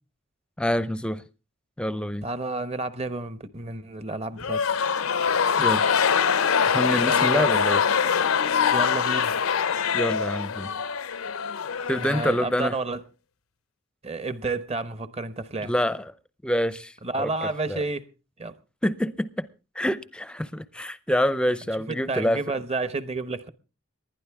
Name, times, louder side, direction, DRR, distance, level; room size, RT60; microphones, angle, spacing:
voice 1, 0.6-1.2 1.8-2.3 5.6-6.0 6.7-7.8 9.9-10.7 11.9-12.7 15.6-16.0 16.4-17.8 18.8-19.5 19.8-22.4, equal, 5° left, 0.6 m, -26 dB
voice 2, 2.2-4.6 7.0-7.8 8.7-9.4 12.0-13.0 14.0-15.7 17.0-18.1 18.4-18.5 21.9-23.5, right 3 dB, 30° right, 0.9 m, -31 dB
sound 1, 4.4-12.8, left 6 dB, 80° left, 0.7 m, -23 dB
19.5 x 12.0 x 3.5 m
head